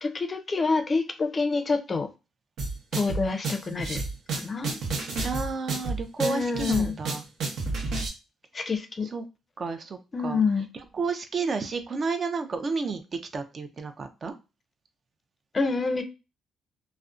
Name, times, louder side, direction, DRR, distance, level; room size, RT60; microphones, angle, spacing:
voice 1, 0.0-2.1 2.9-4.0 4.3-4.8 6.2-6.9 8.5-9.1 10.1-10.7 15.5-16.0, left 4 dB, 35° left, 0.4 m, -27 dB
sound 1, 2.6-8.1, right 3 dB, 75° right, 0.8 m, -30 dB
voice 2, 5.2-7.2 9.1-9.3 9.6-10.0 10.2-10.4 10.9-13.0 13.3-14.3, right 4 dB, 45° right, 0.4 m, -31 dB
2.5 x 2.0 x 2.4 m
cardioid pair, 90°, 0 cm